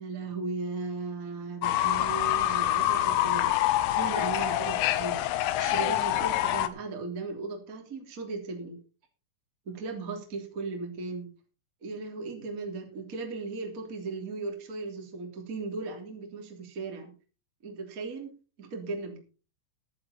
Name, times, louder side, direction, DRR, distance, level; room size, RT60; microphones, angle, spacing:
voice 1, 0.0-3.5 3.9-8.8 9.6-11.3 11.8-17.1 17.6-18.3 18.6-19.2, right 3 dB, 20° right, 2 dB, 2.7 m, -37 dB
Fowl / Bird, 1.6-6.7, left 13 dB, 85° left, 3.6 m, -26 dB
14.0 x 11.0 x 4.3 m, 0.36 s
omnidirectional pair, 5.7 m